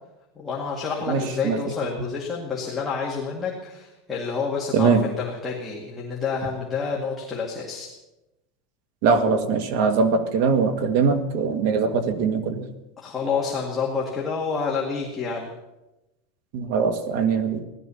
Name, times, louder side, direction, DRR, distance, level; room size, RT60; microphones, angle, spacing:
voice 1, 0.4-7.9 13.0-15.5, left 5 dB, 10° left, -4 dB, 2.0 m, -28 dB
voice 2, 1.1-1.6 4.7-5.0 9.0-12.6 16.5-17.6, right 5 dB, 55° right, 8 dB, 1.8 m, -22 dB
16.5 x 12.0 x 7.0 m, 0.99 s
supercardioid pair, 170°, 0 cm